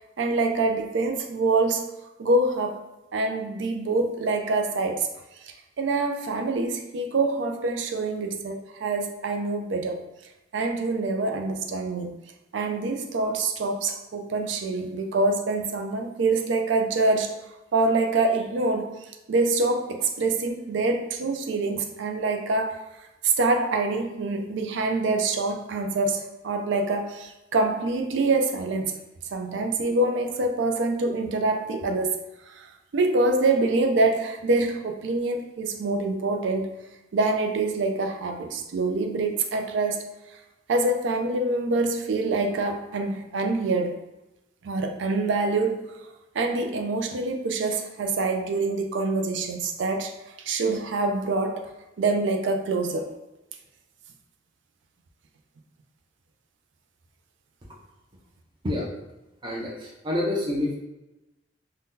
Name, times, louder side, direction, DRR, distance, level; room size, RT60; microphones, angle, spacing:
voice 1, 0.2-1.9 2.2-2.8 3.1-5.1 5.4-10.0 10.5-12.2 12.5-17.3 17.7-18.9 19.3-22.8 23.2-29.0 29.3-32.2 32.5-36.7 37.1-40.1 40.7-44.0 44.6-45.8 46.3-50.1 50.4-51.7 52.0-53.1, right 3 dB, 75° right, 4 dB, 0.4 m, -25 dB
voice 2, 60.0-60.8, left 1 dB, 25° right, -4 dB, 0.5 m, -26 dB
2.7 x 2.2 x 3.6 m, 0.99 s
head